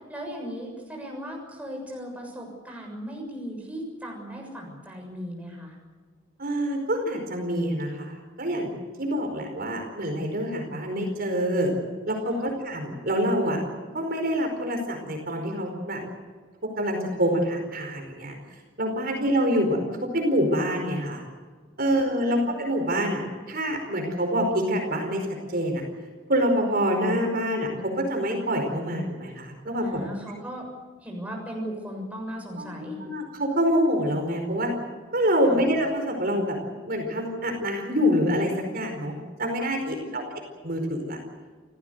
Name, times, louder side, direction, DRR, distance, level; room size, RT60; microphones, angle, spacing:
voice 1, 0.1-5.8 12.3-12.5 19.1-19.3 21.9-22.5 29.8-30.7 31.0-33.0 35.4-35.7 39.9-40.2, equal, 5° right, 0 dB, 6.9 m, -37 dB
voice 2, 6.4-8.7 9.0-11.7 12.1-13.6 13.9-16.0 16.8-18.4 18.8-19.8 20.1-21.2 21.8-23.2 23.5-25.8 26.3-30.0 32.6-34.7 35.1-36.6 36.9-40.2 40.6-41.2, equal, 50° right, 3 dB, 4.8 m, -26 dB
29.5 x 15.5 x 8.1 m, 1.5 s
head